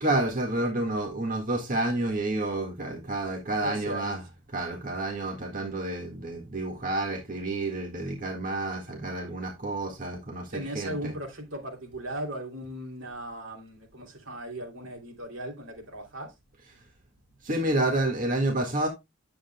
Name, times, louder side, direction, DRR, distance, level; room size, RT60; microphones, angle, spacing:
voice 1, 0.0-4.2 4.5-11.1 17.4-18.9, right 2 dB, 45° right, 1.7 m, -29 dB
voice 2, 3.6-4.2 10.5-16.3, right 1 dB, 70° right, 2.9 m, -37 dB
9.9 x 7.7 x 2.2 m
head